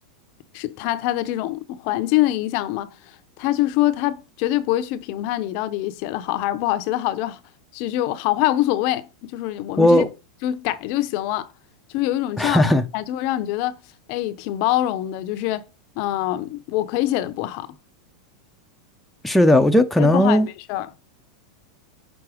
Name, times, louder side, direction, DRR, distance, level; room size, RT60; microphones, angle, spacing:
voice 1, 0.5-2.9 3.4-7.4 7.7-10.0 10.4-11.5 11.9-13.8 14.1-15.6 16.0-17.7 20.0-20.4 20.7-20.9, left 14 dB, 50° left, 0.6 m, -24 dB
voice 2, 9.8-10.1 12.4-12.8 19.2-20.5, left 1 dB, 5° left, 0.5 m, -16 dB
6.1 x 3.8 x 4.8 m
supercardioid pair, 140°, 4 cm